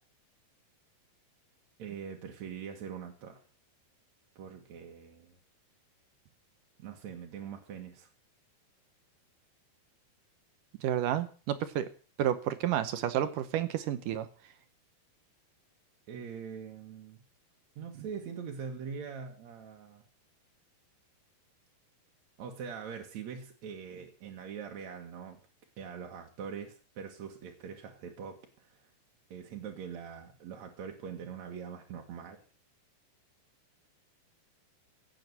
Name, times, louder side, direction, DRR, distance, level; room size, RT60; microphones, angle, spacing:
voice 1, 1.8-3.4 4.4-5.3 6.8-8.1 16.1-17.2 17.8-20.0 22.4-25.4 25.8-28.8 29.3-32.4, right 7 dB, 55° right, 2 dB, 2.6 m, -43 dB
voice 2, 10.8-11.9 12.2-14.3, right 11 dB, 70° right, 12 dB, 2.2 m, -30 dB
16.5 x 7.8 x 8.1 m, 0.39 s
omnidirectional pair, 4.4 m